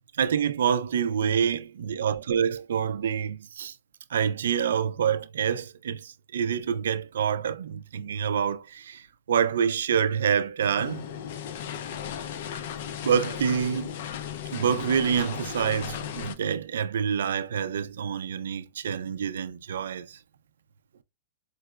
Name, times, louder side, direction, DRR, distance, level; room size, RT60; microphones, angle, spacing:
voice 1, 0.2-3.7 4.1-11.1 13.0-14.0 14.5-20.2, right 7 dB, 90° right, 0.3 m, -27 dB
sound 1, 10.8-16.3, left 9 dB, 55° left, 0.4 m, -36 dB
4.5 x 2.0 x 2.3 m
supercardioid pair, 165°, 0 cm